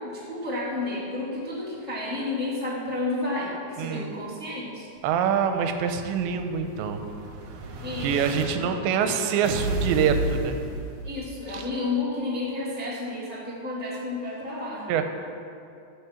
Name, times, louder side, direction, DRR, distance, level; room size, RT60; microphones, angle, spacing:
voice 1, 0.0-4.9 7.8-8.7 11.0-14.9, left 2 dB, 35° left, -8 dB, 1.1 m, -31 dB
voice 2, 3.8-4.2 5.0-7.0 8.0-10.6 11.5-11.6 14.9-15.0, right 7 dB, 90° right, 6 dB, 3.1 m, -25 dB
Explosion, 5.1-8.4 9.4-11.5, right 2 dB, 70° right, 1.8 m, -33 dB
14.5 x 5.9 x 7.1 m, 2.5 s
omnidirectional pair, 5.0 m